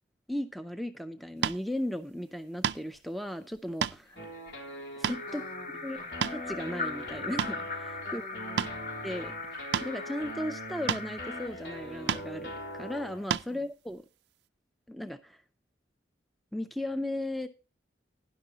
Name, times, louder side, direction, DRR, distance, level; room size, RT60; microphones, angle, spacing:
voice 1, 0.3-4.1 5.0-5.4 5.8-6.0 6.3-8.2 9.0-14.0 14.9-15.4 16.5-17.5, left 1 dB, ahead, 0.4 m, -36 dB
sound 1, 1.4-1.6 2.6-3.0 3.6-4.0 4.5-4.6 5.0-5.2 6.0-6.5 7.1-7.6 8.6-8.8 9.7-9.9 10.9-11.1 12.1-12.3 13.3-13.5, right 8 dB, 70° right, 0.4 m, -30 dB
sound 2, 4.2-13.3, equal, 85° left, 3.5 m, -42 dB
sound 3, 5.0-11.5, left 3 dB, 45° left, 1.7 m, -40 dB
voice 2, 5.3-6.2 8.0-8.9 13.5-13.7, left 1 dB, 25° left, 2.4 m, -49 dB
12.0 x 10.5 x 2.8 m
head